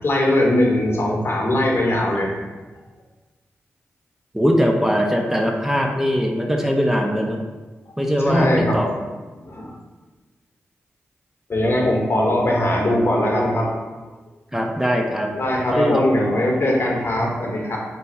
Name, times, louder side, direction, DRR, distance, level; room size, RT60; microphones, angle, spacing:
voice 1, 0.0-2.3 8.3-8.8 9.5-9.7 11.5-13.7 15.3-17.8, left 1 dB, 55° left, -1 dB, 0.8 m, -20 dB
voice 2, 4.3-7.4 8.0-8.9 14.5-15.4 15.7-16.0, equal, 10° right, 1 dB, 0.4 m, -21 dB
3.3 x 2.2 x 4.1 m, 1.3 s
cardioid pair, 50°, 5 cm